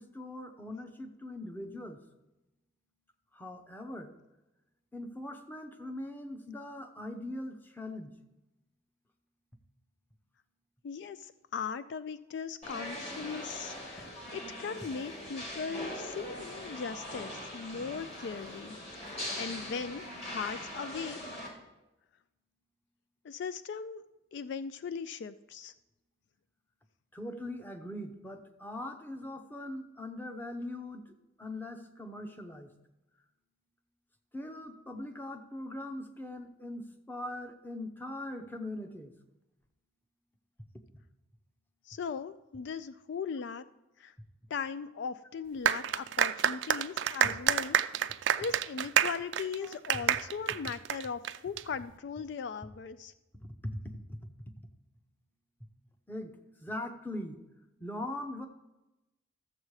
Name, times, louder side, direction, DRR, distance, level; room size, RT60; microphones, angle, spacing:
voice 1, 0.0-2.0 3.3-4.1 4.9-8.1 27.1-32.7 34.3-39.1 49.6-49.8 53.4-54.2 56.1-56.3 56.6-57.4 57.8-58.5, left 1 dB, 10° left, 6 dB, 0.8 m, -41 dB
voice 2, 10.8-18.8 19.0-21.2 21.4-21.5 23.2-24.0 24.3-25.7 41.8-43.6 44.0-44.1 44.5-47.8 48.4-53.1, left 6 dB, 60° left, 14 dB, 0.3 m, -39 dB
sound 1, 12.6-21.5, left 1 dB, 35° left, 2.8 m, -41 dB
sound 2, 45.6-51.6, right 9 dB, 65° right, 0.4 m, -29 dB
13.5 x 7.3 x 4.8 m, 1.0 s
head